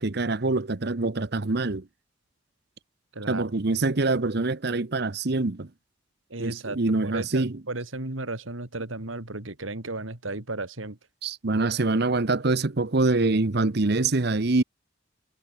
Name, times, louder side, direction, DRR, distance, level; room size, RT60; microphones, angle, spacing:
voice 1, 0.0-1.8 3.3-5.7 6.4-7.6 11.2-14.6, right 3 dB, 55° right, 0.9 m, -25 dB
voice 2, 3.1-3.4 6.3-11.0, right 2 dB, 85° right, 2.8 m, -34 dB
head